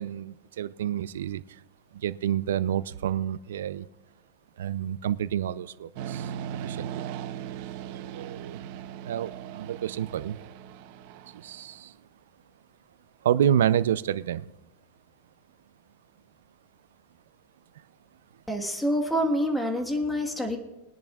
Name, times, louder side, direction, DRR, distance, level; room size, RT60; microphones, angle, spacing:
voice 1, 0.0-1.4 1.9-3.9 4.6-6.3 6.6-7.1 8.1-8.6 9.1-10.4 11.3-11.9 13.2-14.5, right 10 dB, 80° right, 16 dB, 0.5 m, -28 dB
sound 1, 6.0-11.7, right 9 dB, 50° right, 0.8 m, -38 dB
voice 2, 18.5-20.6, equal, 5° left, 3 dB, 1.5 m, -27 dB
22.0 x 10.5 x 2.4 m, 1.0 s
supercardioid pair, 155°, 0 cm